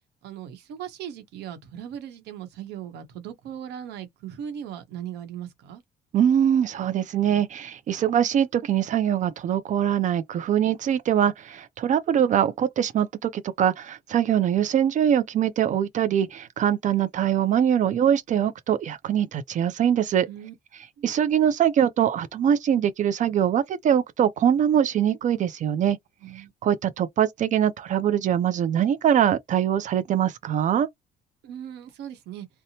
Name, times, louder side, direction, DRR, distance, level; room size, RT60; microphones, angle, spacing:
voice 1, 0.2-5.8 20.3-20.5 21.0-21.1 26.2-26.5 31.4-32.5, right 9 dB, 80° right, 0.9 m, -38 dB
voice 2, 6.1-20.3 21.0-26.0 26.4-30.9, right 9 dB, 50° right, 0.4 m, -23 dB
2.8 x 2.1 x 2.8 m
cardioid pair, 110°, 17 cm